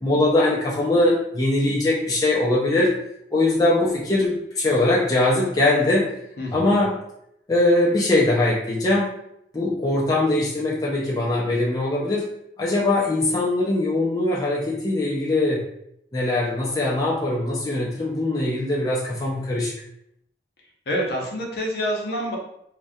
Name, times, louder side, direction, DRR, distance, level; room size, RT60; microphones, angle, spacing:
voice 1, 0.0-2.9 3.3-6.1 6.5-6.9 7.5-9.1 9.5-12.3 12.6-15.6 16.1-19.7, left 2 dB, 20° left, -5 dB, 0.3 m, -21 dB
voice 2, 6.4-6.8 20.9-22.4, equal, 60° left, -2 dB, 0.6 m, -27 dB
2.3 x 2.1 x 2.6 m, 0.76 s
head